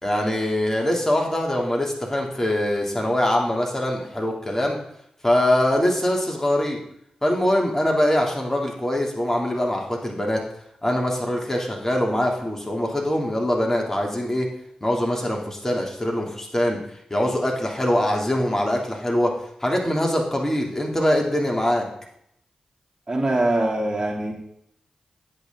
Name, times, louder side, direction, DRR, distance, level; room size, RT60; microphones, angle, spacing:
voice 1, 0.0-4.8 5.2-6.8 7.2-10.4 10.8-14.5 14.8-16.8 17.1-19.3 19.6-21.8, left 1 dB, 20° left, 0 dB, 3.3 m, -23 dB
voice 2, 23.1-24.3, right 1 dB, 30° right, -2 dB, 3.3 m, -23 dB
10.0 x 8.4 x 4.0 m, 0.72 s
cardioid pair, 45°, 2 cm